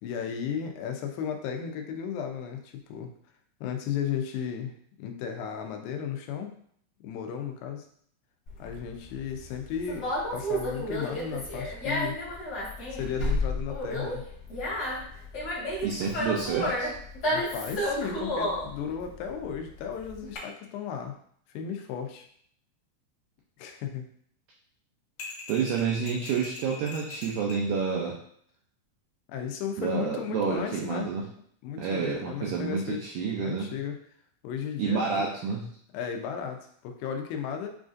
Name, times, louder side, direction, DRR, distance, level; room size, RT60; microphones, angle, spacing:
voice 1, 0.0-3.1 3.6-6.5 7.0-7.9 8.6-12.2 12.9-14.2 17.3-21.2 21.5-22.3 23.6-24.1 29.3-31.2 31.6-33.1 33.4-34.0 34.4-35.3 35.9-37.7, left 7 dB, 85° left, 4 dB, 2.4 m, -35 dB
Conversation, 8.5-20.4, equal, 50° left, 1.2 m, -31 dB
voice 2, 15.8-16.9 25.5-28.2 29.8-31.2 31.8-33.7 34.8-35.7, right 6 dB, 80° right, -2 dB, 1.8 m, -29 dB
sound 1, 25.2-27.7, left 3 dB, 65° left, 2.2 m, -41 dB
6.9 x 2.5 x 2.5 m, 0.62 s
omnidirectional pair, 4.1 m